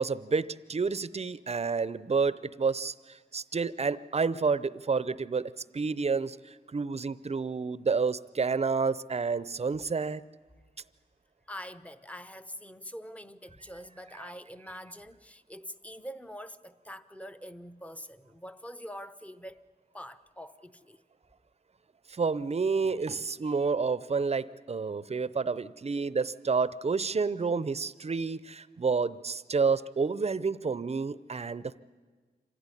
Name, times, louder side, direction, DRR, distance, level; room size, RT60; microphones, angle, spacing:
voice 1, 0.0-10.2 14.2-14.3 22.1-31.8, right 5 dB, 40° right, 0.6 m, -29 dB
voice 2, 11.5-19.6 19.9-21.0 23.4-23.6, equal, 10° left, 0.8 m, -44 dB
25.5 x 16.0 x 9.9 m
wide cardioid pair, 100°, 17 cm